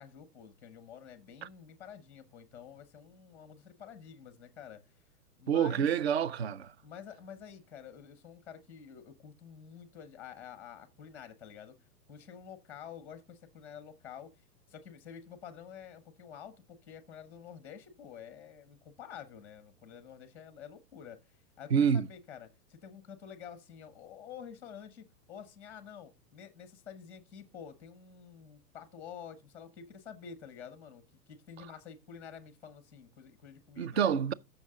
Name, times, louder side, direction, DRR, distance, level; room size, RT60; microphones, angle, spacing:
voice 1, 0.0-4.8 5.4-5.9 6.8-11.8 12.1-14.3 14.7-21.2 21.6-31.0 31.3-34.0, left 8 dB, 5° left, 0.7 m, -49 dB
voice 2, 5.5-6.7 21.7-22.0 33.8-34.3, right 7 dB, 45° right, 0.4 m, -27 dB
14.0 x 6.4 x 3.7 m
hypercardioid pair, 170°, 49 cm